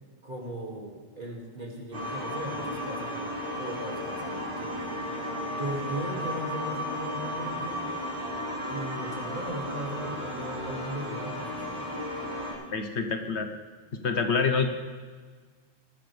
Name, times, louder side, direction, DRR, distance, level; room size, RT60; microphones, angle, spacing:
voice 1, 0.2-4.8 5.6-8.1 8.7-11.9, right 1 dB, 40° right, -1 dB, 2.6 m, -38 dB
sound 1, 1.9-12.5, left 1 dB, 80° right, 5.2 m, -34 dB
voice 2, 12.7-13.5 14.0-14.7, left 5 dB, 65° left, 6 dB, 1.3 m, -26 dB
19.5 x 13.0 x 3.4 m, 1.5 s
omnidirectional pair, 1.2 m